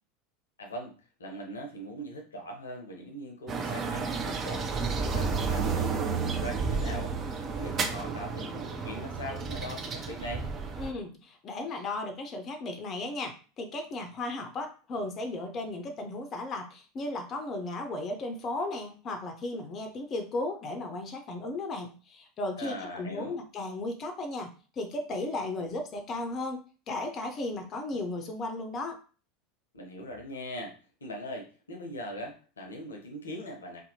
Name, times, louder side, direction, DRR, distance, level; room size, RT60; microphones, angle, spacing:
voice 1, 0.6-10.5 22.6-23.4 29.7-30.8 31.0-33.8, equal, 80° left, 2 dB, 0.6 m, -41 dB
sound 1, 3.5-10.9, right 5 dB, 35° right, 0.5 m, -31 dB
voice 2, 10.8-29.0, left 2 dB, 35° left, 5 dB, 0.5 m, -35 dB
2.6 x 2.1 x 2.8 m, 0.37 s
figure-of-eight pair, 80°, 0 cm